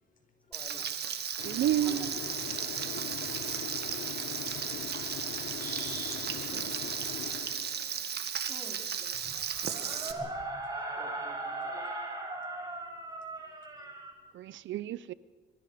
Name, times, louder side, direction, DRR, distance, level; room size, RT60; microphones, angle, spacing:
voice 1, 0.5-1.1 1.8-2.0 8.5-8.9 9.8-10.4 11.0-11.8, left 1 dB, 5° left, 1 dB, 4.6 m, -51 dB
Frying (food), 0.5-10.1, right 8 dB, 55° right, 1.9 m, -35 dB
sound 1, 1.4-8.1, left 12 dB, 70° left, 0.6 m, -42 dB
voice 2, 1.4-2.1 3.0-3.1 6.5-6.6 14.3-15.1, right 12 dB, 70° right, 19 dB, 0.6 m, -31 dB
voice 3, 3.1-3.8 7.2-8.5 9.0-9.5 11.1-11.9 14.5-14.6, left 3 dB, 45° left, 4 dB, 5.3 m, -59 dB
sound 2, 5.6-6.2 9.1-14.1, right 2 dB, 20° right, 7.6 m, -38 dB
25.5 x 23.0 x 5.0 m, 1.4 s
cardioid pair, 90°, 20 cm